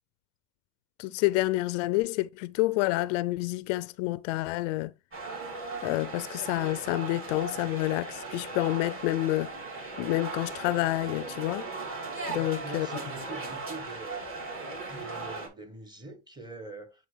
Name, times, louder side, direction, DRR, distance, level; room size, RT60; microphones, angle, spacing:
voice 1, 1.0-4.9 5.8-9.5 10.0-11.7 12.3-12.9, left 18 dB, 65° left, 0.5 m, -28 dB
sound 1, 5.1-15.5, right 3 dB, 30° right, 3.2 m, -38 dB
voice 2, 12.4-14.3 14.9-17.1, right 2 dB, 10° right, 1.4 m, -43 dB
8.6 x 3.8 x 3.3 m
supercardioid pair, 110°, 41 cm